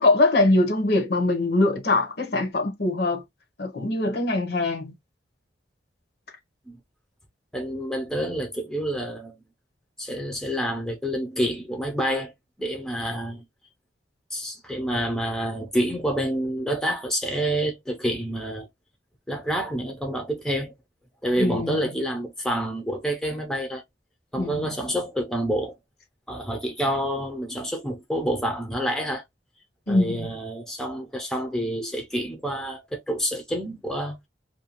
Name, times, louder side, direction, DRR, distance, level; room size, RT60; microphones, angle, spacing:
voice 1, 0.0-3.2 3.6-4.9 21.4-21.9 24.3-24.8 29.9-30.4, left 2 dB, 55° left, 0.7 m, -23 dB
voice 2, 7.5-9.4 10.0-12.3 12.6-13.4 14.3-18.7 19.3-20.7 21.2-23.8 24.3-25.7 26.3-29.2 29.9-34.3, equal, 5° left, 0.5 m, -28 dB
2.6 x 2.2 x 2.8 m
head